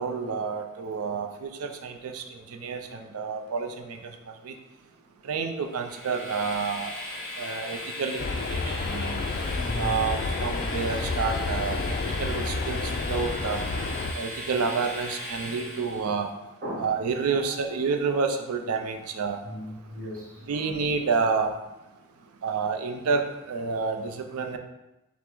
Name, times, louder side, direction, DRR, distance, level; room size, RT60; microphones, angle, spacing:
voice 1, 0.0-4.2 4.4-4.5 5.2-6.9 7.4-9.2 9.8-13.6 14.1-16.3 16.8-19.4 20.5-21.5 22.4-24.6, right 5 dB, 75° right, 5 dB, 0.4 m, -29 dB
Train, 5.7-16.2, left 1 dB, 5° left, 1.2 m, -38 dB
sound 1, 8.2-14.1, left 3 dB, 40° left, 0.3 m, -30 dB
voice 2, 8.6-9.1 9.5-9.9 10.9-11.1 15.4-15.5 16.6-16.9 17.3-17.6 19.4-20.7, equal, 40° right, -4 dB, 1.1 m, -39 dB
5.6 x 2.1 x 3.7 m, 0.95 s
head